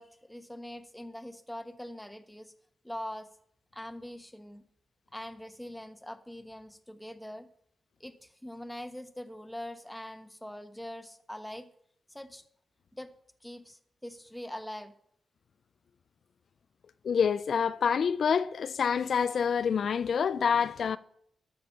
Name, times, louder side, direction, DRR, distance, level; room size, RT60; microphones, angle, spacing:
voice 1, 0.0-2.5 2.8-3.3 3.7-4.6 5.1-7.5 8.0-11.7 12.1-12.4 12.9-13.1 13.4-14.9, left 1 dB, 5° left, 1.2 m, -43 dB
voice 2, 17.0-21.0, left 6 dB, 70° left, 0.4 m, -27 dB
12.5 x 6.8 x 7.2 m
cardioid pair, 75°, 0 cm